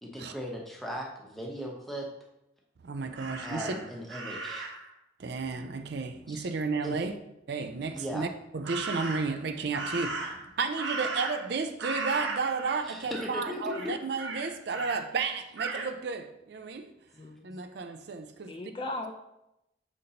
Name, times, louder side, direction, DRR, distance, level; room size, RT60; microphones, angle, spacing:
voice 1, 0.0-2.1 3.4-4.7 6.3-6.5 6.8-7.0 7.9-8.3 12.9-13.1 13.3-13.9, equal, ahead, 0.8 m, -38 dB
voice 2, 2.8-3.7 5.2-7.1 7.5-8.3 8.5-16.9 17.4-18.5, right 4 dB, 55° right, 0.4 m, -33 dB
Crow, 3.1-4.9 8.6-9.4 9.7-11.5 11.8-12.8 13.1-13.4 13.7-15.0 15.6-15.9, right 3 dB, 70° right, 0.9 m, -36 dB
voice 3, 17.1-17.6 18.4-19.1, left 2 dB, 25° left, 0.4 m, -38 dB
6.4 x 5.3 x 2.8 m
head